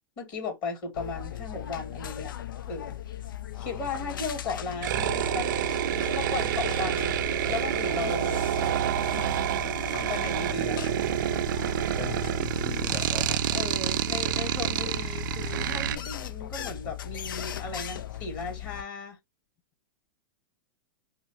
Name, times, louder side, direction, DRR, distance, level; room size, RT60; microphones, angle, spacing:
voice 1, 0.2-2.3 2.7-3.0 3.5-5.5 6.1-7.2 7.5-8.8 10.1-10.8 13.5-19.2, left 4 dB, 40° left, 2.5 m, -36 dB
sound 1, 0.9-18.8, left 11 dB, 80° left, 0.4 m, -38 dB
sound 2, 4.8-16.0, right 11 dB, 70° right, 0.5 m, -28 dB
voice 2, 12.0-13.3, left 6 dB, 20° left, 0.6 m, -39 dB
5.5 x 2.0 x 2.8 m
hypercardioid pair, 105°, 11 cm